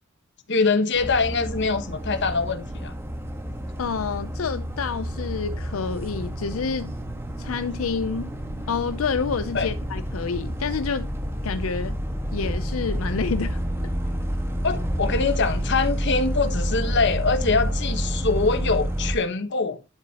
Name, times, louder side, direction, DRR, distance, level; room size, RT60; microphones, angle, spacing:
voice 1, 0.5-2.9 9.5-9.7 14.6-19.8, left 4 dB, 60° left, 1.2 m, -24 dB
sound 1, 0.9-19.2, equal, 10° right, 1.5 m, -29 dB
voice 2, 3.8-6.9 7.4-8.3 8.7-11.1 11.4-12.0 12.3-13.6, left 5 dB, 85° left, 0.5 m, -28 dB
10.5 x 6.9 x 2.9 m
head